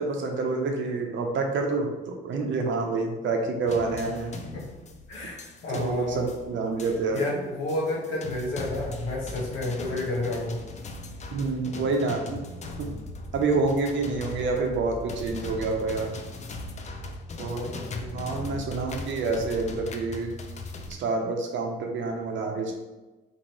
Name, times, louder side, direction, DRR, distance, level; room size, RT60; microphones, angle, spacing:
voice 1, 0.0-4.4 5.7-7.2 11.3-12.4 12.8-12.9 13.3-16.1 17.4-17.7 18.1-20.4 20.9-22.7, right 3 dB, 70° right, 2 dB, 0.7 m, -28 dB
sound 1, 3.7-20.9, left 2 dB, 35° left, 0.4 m, -39 dB
voice 2, 5.1-6.3 7.1-10.6 17.4-18.4, left 2 dB, 90° left, -4 dB, 1.0 m, -31 dB
3.0 x 3.0 x 4.0 m, 1.1 s
cardioid pair, 90°, 20 cm